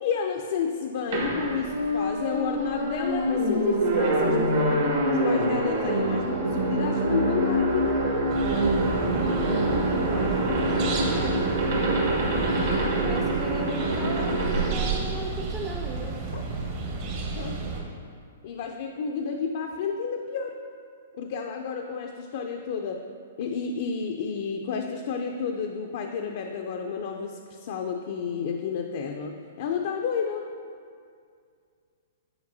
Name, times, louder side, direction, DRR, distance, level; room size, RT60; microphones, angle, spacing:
voice 1, 0.0-8.4 16.3-16.4 17.3-17.6 18.4-20.5 21.2-23.0 23.4-30.5, left 6 dB, 55° left, 3 dB, 0.4 m, -31 dB
sound 1, 1.1-15.9, right 1 dB, 65° right, 1.3 m, -25 dB
sound 2, 8.3-17.8, right 3 dB, 45° right, 1.0 m, -33 dB
voice 2, 10.1-12.2 13.0-16.3, right 2 dB, 20° right, -1 dB, 0.4 m, -37 dB
7.9 x 4.7 x 2.7 m, 2.2 s
hypercardioid pair, 135°, 0 cm